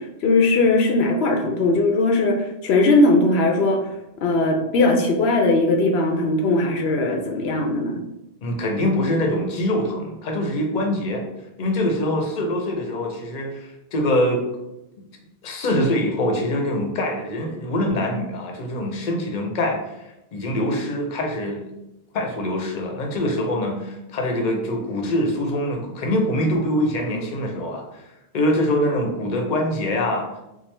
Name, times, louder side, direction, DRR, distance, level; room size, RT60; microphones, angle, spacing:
voice 1, 0.2-3.9 4.2-8.0, left 2 dB, 80° left, 3 dB, 0.8 m, -19 dB
voice 2, 8.4-11.2 11.6-14.4 15.4-21.6 22.1-28.0 28.3-30.3, left 1 dB, 55° left, 2 dB, 0.8 m, -24 dB
4.4 x 2.1 x 3.2 m, 0.92 s
omnidirectional pair, 1.0 m